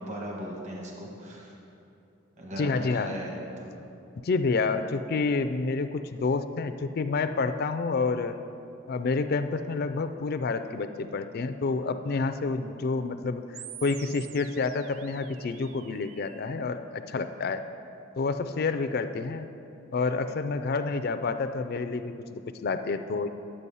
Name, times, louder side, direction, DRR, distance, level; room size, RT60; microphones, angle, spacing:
voice 1, 0.0-1.5 2.4-3.3 3.6-3.7, right 1 dB, 35° right, -1 dB, 1.3 m, -38 dB
voice 2, 2.6-3.1 4.2-8.4 8.9-13.4 13.8-17.6 18.2-19.5 19.9-23.3, left 4 dB, 50° left, 9 dB, 0.4 m, -29 dB
sound 1, 13.5-16.5, right 11 dB, 80° right, 0.4 m, -47 dB
9.8 x 7.7 x 5.4 m, 2.7 s
head